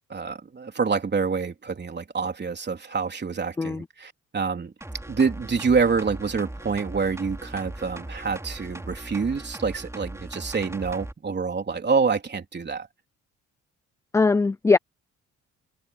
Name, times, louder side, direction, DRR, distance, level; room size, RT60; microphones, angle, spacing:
voice 1, 0.1-4.7 5.1-12.9, right 5 dB, 35° right, 3.6 m, -27 dB
sound 1, 4.8-11.1 11.5-11.6, right 1 dB, 10° right, 4.6 m, -38 dB
voice 2, 14.1-14.8, left 4 dB, 10° left, 0.3 m, -20 dB
cardioid pair, 90°, 30 cm